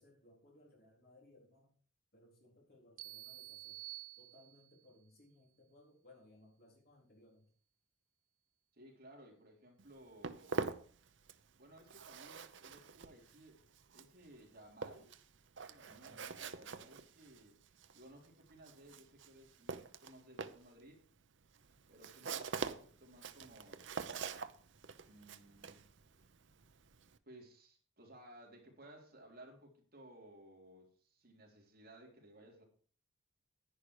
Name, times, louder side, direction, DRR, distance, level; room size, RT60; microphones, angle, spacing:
voice 1, 0.0-1.8 2.1-3.8 4.2-7.5 15.9-16.3, left 1 dB, 50° left, -1 dB, 4.1 m, -64 dB
sound 1, 3.0-4.9, right 18 dB, 85° right, 0.4 m, -50 dB
voice 2, 8.7-10.6 11.6-13.6 13.9-15.1 15.7-17.6 17.9-21.0 21.9-24.5 25.1-25.8 27.3-32.6, right 1 dB, 45° right, -1 dB, 3.7 m, -59 dB
Walk footsteps, 9.8-11.5 11.8-27.2, right 4 dB, 65° right, 0.8 m, -45 dB
10.5 x 10.5 x 4.9 m, 0.43 s
head